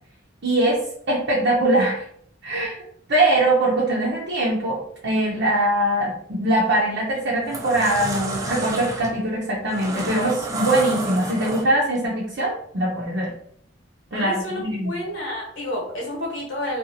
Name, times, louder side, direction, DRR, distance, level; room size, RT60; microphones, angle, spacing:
voice 1, 0.4-2.0 2.4-2.7 3.1-13.3 14.1-14.9, right 1 dB, 60° right, -5 dB, 0.6 m, -22 dB
sound 1, 6.6-6.8 7.3-12.0, right 2 dB, 15° right, 0.4 m, -30 dB
voice 2, 14.1-16.8, left 1 dB, 75° left, -3 dB, 1.2 m, -30 dB
2.8 x 2.3 x 2.6 m, 0.66 s
head